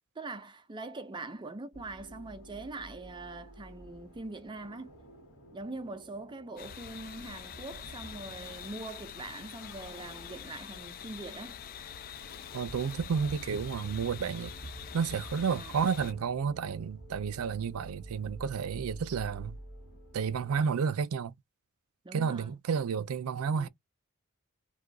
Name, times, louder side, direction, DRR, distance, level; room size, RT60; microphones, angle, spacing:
voice 1, 0.2-4.9 5.5-11.6 15.5-15.8 22.0-22.5 23.5-23.7, right 2 dB, 20° right, 0.5 m, -43 dB
sound 1, 1.7-20.7, right 2 dB, 70° left, 1.5 m, -50 dB
sound 2, 6.6-16.1, left 9 dB, 45° left, 0.3 m, -45 dB
voice 2, 12.5-14.5 14.9-19.6 20.1-21.3 22.1-23.7, right 6 dB, 85° right, 0.4 m, -31 dB
2.6 x 2.3 x 3.8 m
head